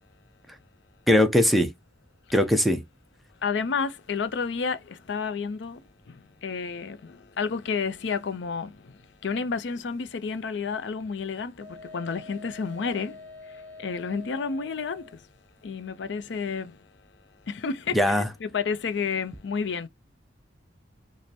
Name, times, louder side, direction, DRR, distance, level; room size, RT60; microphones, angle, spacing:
voice 1, 1.1-1.7 2.3-2.8 17.9-18.3, left 1 dB, ahead, 0.5 m, -20 dB
voice 2, 3.4-15.3 15.6-16.9 17.5-19.9, left 5 dB, 70° left, 0.5 m, -31 dB
Wind instrument woodwind instrument, 11.6-15.2, left 3 dB, 25° right, 1.5 m, -45 dB
5.2 x 2.0 x 2.7 m
head